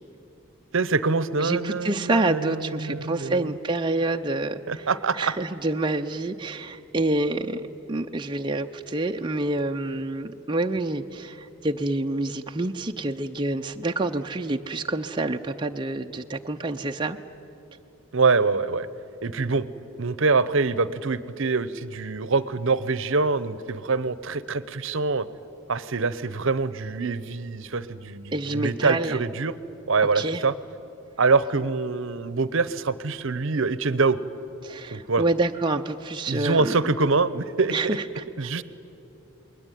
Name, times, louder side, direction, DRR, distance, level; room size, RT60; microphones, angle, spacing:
voice 1, 0.7-3.5 4.7-5.3 18.1-18.9 19.2-19.7 20.0-25.3 25.7-29.5 29.9-30.5 31.2-34.2 34.9-35.2 36.3-38.0 38.4-38.6, right 4 dB, 60° right, 16 dB, 0.8 m, -24 dB
voice 2, 1.4-4.9 5.1-7.6 7.9-17.2 28.3-29.2 30.1-30.4 34.6-36.8 37.7-38.2, right 2 dB, 20° right, 3 dB, 0.6 m, -27 dB
28.5 x 21.0 x 9.2 m, 2.9 s
head